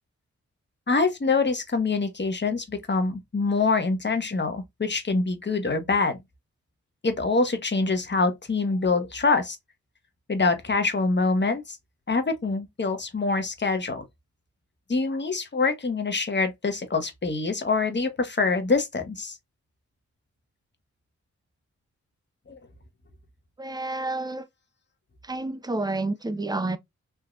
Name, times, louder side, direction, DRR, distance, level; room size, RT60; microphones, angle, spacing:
voice 1, 0.9-6.2 7.0-9.6 10.3-11.8 12.1-14.0 14.9-19.4 22.5-22.6, left 3 dB, 35° left, 1.1 m, -25 dB
voice 2, 23.6-24.5 25.2-26.8, right 2 dB, 15° right, 0.5 m, -29 dB
3.5 x 2.8 x 2.3 m
cardioid pair, 65°, 30 cm